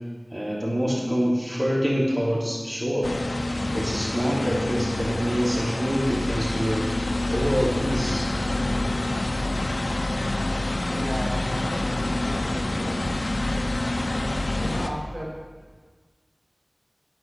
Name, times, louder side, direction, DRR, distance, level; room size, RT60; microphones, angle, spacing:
voice 1, 0.3-3.1 3.7-6.9 7.3-8.3, equal, 35° right, -6 dB, 3.3 m, -25 dB
sound 1, 3.0-14.9, left 2 dB, 85° left, 0.8 m, -27 dB
voice 2, 10.9-13.0 13.8-15.3, equal, 85° right, -6 dB, 3.1 m, -36 dB
9.6 x 9.6 x 6.1 m, 1.4 s
wide cardioid pair, 45°, 0 cm